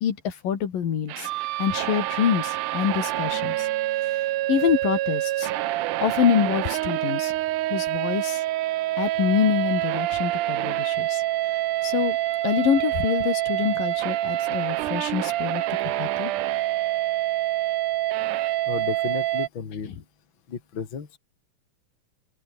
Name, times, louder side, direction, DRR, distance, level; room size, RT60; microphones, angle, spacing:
voice 1, 0.0-1.3 1.6-3.7 4.1-5.5 6.0-7.3 7.7-8.4 9.0-11.2 11.8-12.2 12.4-16.3, left 8 dB, 80° left, 4.2 m, -26 dB
sound 1, 1.1-19.5, right 16 dB, 75° right, 2.2 m, -26 dB
voice 2, 18.7-19.9 20.5-21.2, left 6 dB, 35° left, 3.2 m, -33 dB
open air
omnidirectional pair, 3.9 m